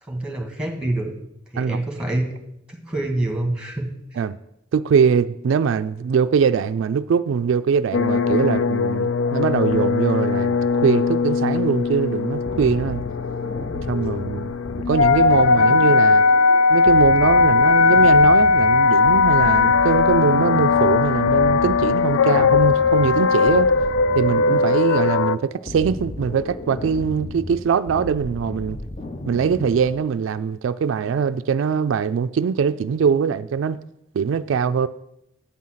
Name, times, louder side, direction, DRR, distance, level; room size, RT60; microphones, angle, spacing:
voice 1, 0.1-1.1 1.5-2.3 2.8-3.9, right 1 dB, 5° right, 1.5 m, -26 dB
voice 2, 4.7-13.0 13.9-14.6 14.9-16.2 16.7-23.7 24.1-28.8 29.3-33.8 34.1-34.9, right 6 dB, 80° right, 0.3 m, -22 dB
sound 1, 7.9-25.4, left 4 dB, 90° left, 0.4 m, -18 dB
sound 2, 12.5-30.1, left 2 dB, 30° left, 0.6 m, -34 dB
8.6 x 5.6 x 7.6 m
head